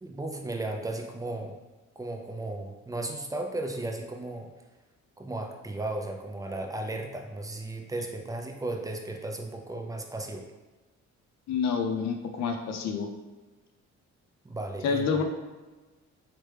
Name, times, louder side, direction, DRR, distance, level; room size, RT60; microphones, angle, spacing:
voice 1, 0.0-1.6 2.0-4.5 5.2-10.5 14.4-15.0, right 2 dB, 10° right, 3 dB, 0.3 m, -35 dB
voice 2, 11.5-13.1 14.8-15.2, left 5 dB, 65° left, 4 dB, 0.5 m, -28 dB
3.2 x 2.1 x 3.2 m, 1.2 s
cardioid pair, 90°, 30 cm